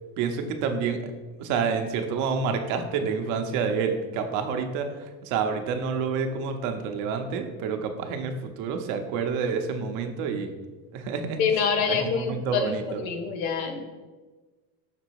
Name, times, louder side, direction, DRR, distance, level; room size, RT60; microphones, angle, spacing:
voice 1, 0.2-1.0 1.4-10.5 10.9-11.4 11.9-13.0, right 5 dB, 45° right, 6 dB, 0.8 m, -28 dB
voice 2, 11.4-12.7 13.0-13.8, left 6 dB, 65° left, 6 dB, 1.1 m, -26 dB
6.0 x 3.9 x 4.6 m, 1.3 s
supercardioid pair, 160°, 42 cm